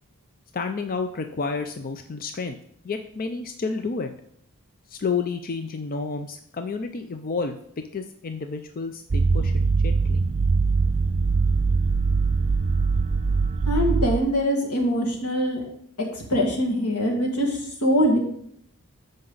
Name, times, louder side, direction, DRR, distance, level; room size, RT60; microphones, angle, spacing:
voice 1, 0.5-2.6 2.8-4.1 4.9-7.6 7.9-10.2, left 4 dB, 40° left, 7 dB, 0.5 m, -30 dB
sound 1, 9.1-14.2, right 4 dB, 30° right, 0.3 m, -22 dB
voice 2, 13.7-15.6 16.0-18.2, equal, 85° left, 0 dB, 2.2 m, -23 dB
13.5 x 5.3 x 3.9 m, 0.69 s
head